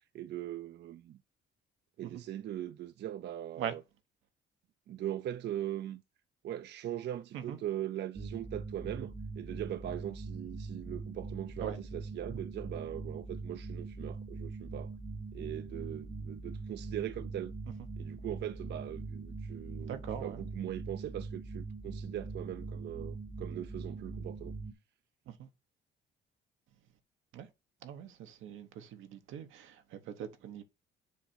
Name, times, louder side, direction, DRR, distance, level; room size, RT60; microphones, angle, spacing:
voice 1, 0.1-1.2 2.0-3.8 4.9-6.0 6.4-14.9 15.3-17.5 18.0-24.5, right 12 dB, 60° right, 0.4 m, -40 dB
sound 1, 8.1-24.7, right 3 dB, 15° right, 0.8 m, -42 dB
voice 2, 19.9-20.4 25.3-25.5 27.3-27.5 27.8-30.6, right 9 dB, 85° right, 0.9 m, -41 dB
7.2 x 2.6 x 5.7 m
cardioid pair, 90°, 20 cm